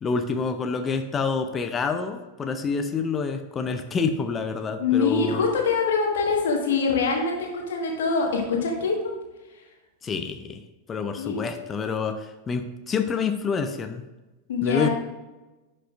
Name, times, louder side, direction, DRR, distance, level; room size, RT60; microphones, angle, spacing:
voice 1, 0.0-5.5 10.0-10.6 10.9-14.0 14.6-14.9, left 5 dB, 20° left, 7 dB, 0.5 m, -27 dB
voice 2, 4.8-9.1 11.2-11.4 14.5-14.9, left 4 dB, 60° left, 0 dB, 1.6 m, -24 dB
11.0 x 5.4 x 2.5 m, 1.1 s
figure-of-eight pair, 90°, 0 cm